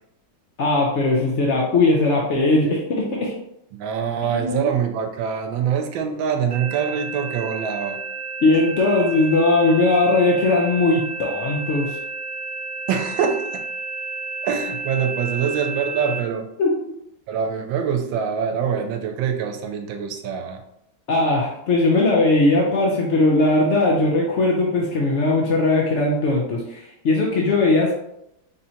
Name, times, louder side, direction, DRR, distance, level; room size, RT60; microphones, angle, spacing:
voice 1, 0.6-3.3 4.3-4.7 8.4-12.0 16.6-16.7 21.1-27.9, left 2 dB, 85° left, -2 dB, 0.6 m, -19 dB
voice 2, 3.7-8.0 12.9-13.6 14.4-16.5 17.3-20.6, right 7 dB, 85° right, 5 dB, 1.3 m, -24 dB
sound 1, 6.5-16.2, right 4 dB, 60° right, 0.5 m, -31 dB
4.3 x 3.8 x 2.7 m, 0.78 s
omnidirectional pair, 2.1 m